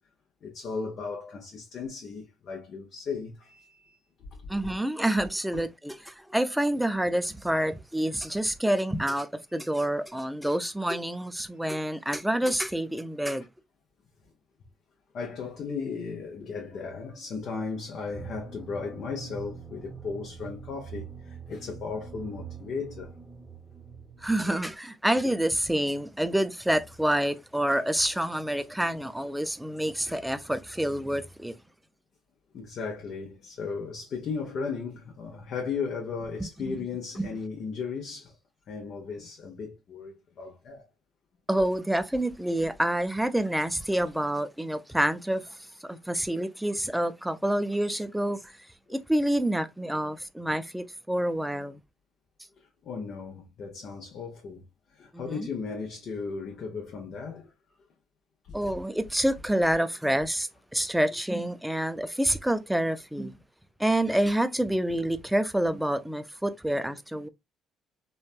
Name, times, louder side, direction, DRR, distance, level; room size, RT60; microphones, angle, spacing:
voice 1, 0.4-4.0 4.4-4.6 5.5-5.6 15.1-23.1 24.4-24.6 29.7-29.8 32.5-38.4 38.7-40.9 45.9-46.0 48.9-49.0 52.6-54.6 54.9-57.5 58.5-58.6, left 5 dB, 60° left, 0.7 m, -36 dB
voice 2, 4.5-13.5 24.2-31.5 36.6-36.7 37.2-37.3 41.5-45.4 45.9-48.5 48.9-51.8 55.1-55.5 58.5-63.4 63.8-67.3, right 1 dB, 5° right, 0.4 m, -27 dB
sound 1, 18.1-24.7, right 6 dB, 20° left, 1.2 m, -44 dB
3.1 x 2.2 x 2.4 m
cardioid pair, 85°, 0 cm